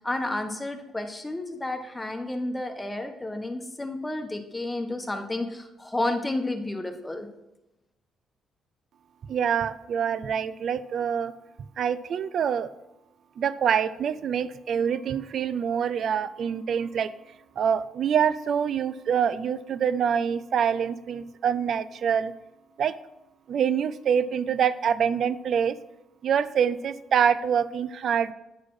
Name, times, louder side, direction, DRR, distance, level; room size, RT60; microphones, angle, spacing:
voice 1, 0.0-7.3, left 2 dB, 15° left, 5 dB, 1.1 m, -31 dB
voice 2, 9.3-11.3 11.8-12.7 13.4-17.1 17.6-22.3 22.8-23.0 23.5-25.8 26.2-28.3, right 8 dB, 60° right, 15 dB, 0.4 m, -25 dB
9.1 x 4.1 x 4.7 m, 0.91 s
cardioid pair, 90°, 0 cm